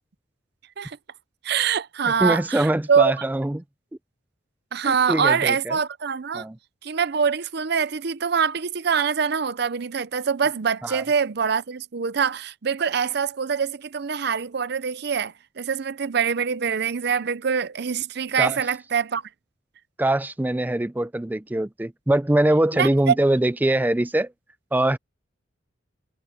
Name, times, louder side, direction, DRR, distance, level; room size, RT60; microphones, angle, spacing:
voice 1, 1.4-3.1 4.7-6.4 6.8-19.2 22.7-23.2, right 6 dB, 60° right, 0.6 m, -24 dB
voice 2, 2.1-3.6 4.8-5.8 6.3-6.6 10.8-11.0 18.4-18.6 20.0-24.3 24.7-25.0, right 1 dB, 10° right, 0.4 m, -23 dB
head